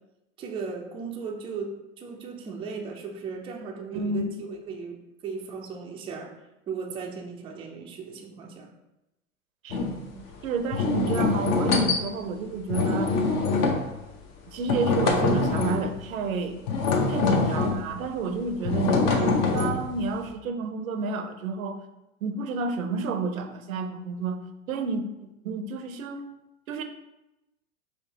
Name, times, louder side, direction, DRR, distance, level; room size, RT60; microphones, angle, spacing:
voice 1, 0.4-6.3 6.7-8.7, right 5 dB, 15° right, 1 dB, 0.3 m, -36 dB
voice 2, 3.9-4.3 9.6-13.1 14.5-16.6 17.1-21.8 22.2-24.4 24.7-26.2 26.7-26.8, right 4 dB, 85° right, 8 dB, 0.6 m, -30 dB
sound 1, 9.7-10.0 10.7-12.0 12.7-14.0 14.7-15.9 16.7-17.8 18.6-20.0, left 4 dB, 45° left, 0.7 m, -24 dB
4.3 x 2.8 x 2.8 m, 0.94 s
hypercardioid pair, 100°, 40 cm